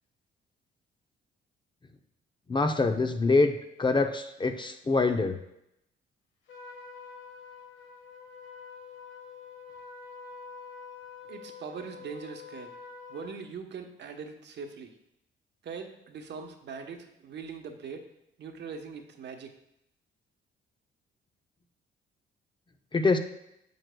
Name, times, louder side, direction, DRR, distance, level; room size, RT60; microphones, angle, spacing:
voice 1, 2.5-5.4 22.9-23.2, left 3 dB, 25° left, 7 dB, 0.6 m, -25 dB
Trumpet, 6.5-13.4, left 5 dB, 75° left, 1.4 m, -46 dB
voice 2, 11.3-12.7 13.1-14.9 15.6-18.0 18.4-19.5, right 5 dB, 60° right, 4 dB, 1.0 m, -41 dB
9.3 x 7.7 x 2.3 m, 0.81 s
cardioid pair, 90°, 20 cm